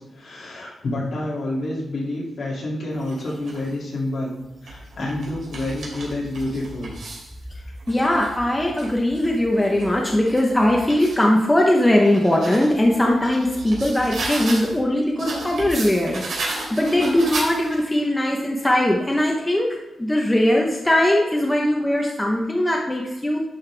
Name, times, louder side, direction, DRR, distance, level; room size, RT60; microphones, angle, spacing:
voice 1, 0.1-4.3 4.6-6.9, left 1 dB, 55° left, -4 dB, 2.5 m, -28 dB
sound 1, 2.9-3.7 4.4-7.3 7.8-11.2 11.7-14.8 15.2-17.9, right 2 dB, 75° right, 3.0 m, -34 dB
voice 2, 7.9-16.2 16.7-19.7 20.0-23.4, left 1 dB, 10° left, -1 dB, 0.9 m, -20 dB
11.0 x 5.5 x 3.4 m, 1.0 s
wide cardioid pair, 160°, 0 cm